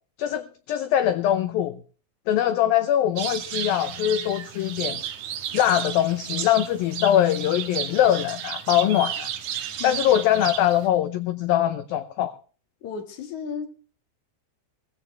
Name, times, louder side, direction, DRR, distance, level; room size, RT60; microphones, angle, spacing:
voice 1, 0.2-1.8 2.3-5.0 5.5-9.3 9.8-12.3, left 11 dB, 80° left, 12 dB, 2.1 m, -22 dB
sound 1, 3.2-10.9, right 9 dB, 60° right, 2.2 m, -33 dB
voice 2, 12.8-13.7, left 6 dB, 50° left, 7 dB, 2.7 m, -34 dB
18.0 x 16.0 x 3.3 m, 0.38 s
omnidirectional pair, 5.1 m